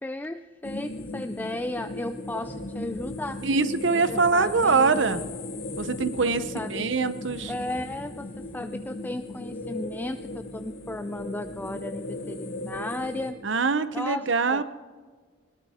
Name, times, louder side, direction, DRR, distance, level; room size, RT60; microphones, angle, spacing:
voice 1, 0.0-3.4 3.9-5.2 6.2-6.9 7.5-13.4 13.9-14.6, left 2 dB, 10° left, 10 dB, 0.4 m, -35 dB
sound 1, 0.6-13.3, left 2 dB, 60° left, 2.1 m, -37 dB
sound 2, 2.4-8.7, equal, 35° right, 3.0 m, -49 dB
voice 2, 3.4-5.2 5.8-7.5 13.4-14.6, right 4 dB, 70° right, 13 dB, 0.8 m, -24 dB
20.5 x 17.5 x 3.6 m, 1.5 s
head